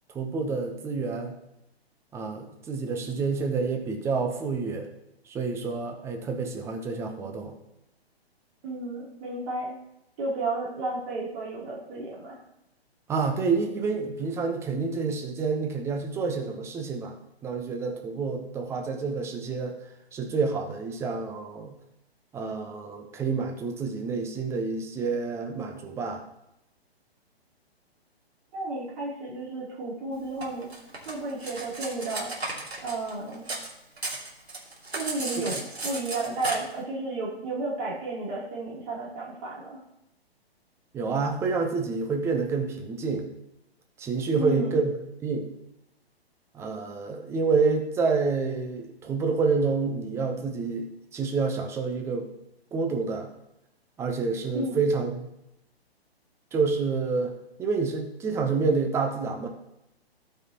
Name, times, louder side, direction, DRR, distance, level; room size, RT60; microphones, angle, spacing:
voice 1, 0.1-1.3 2.1-4.9 5.3-7.5 13.1-17.1 17.4-19.8 20.1-21.7 22.3-26.2 35.5-35.6 40.9-43.3 44.0-45.0 45.2-45.5 46.5-52.3 52.7-53.3 54.0-55.3 56.5-57.3 57.6-59.5, right 4 dB, 10° right, 3 dB, 0.8 m, -28 dB
voice 2, 8.6-9.7 10.2-12.4 28.5-30.7 31.0-32.3 32.8-33.5 34.9-39.8 44.3-44.8 54.5-54.8, right 2 dB, 35° right, -6 dB, 3.2 m, -32 dB
Cutlery silverware, 30.4-33.7 34.0-36.6, right 2 dB, 75° right, 2.6 m, -34 dB
17.0 x 5.6 x 2.9 m, 0.86 s
figure-of-eight pair, 125°, 32 cm